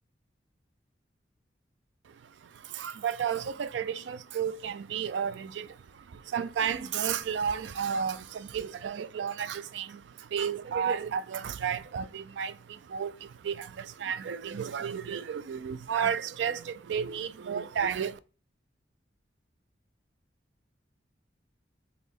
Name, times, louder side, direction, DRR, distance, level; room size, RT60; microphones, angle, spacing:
voice 1, 2.1-18.2, right 7 dB, 75° right, 0.4 m, -33 dB
4.2 x 2.7 x 3.4 m
head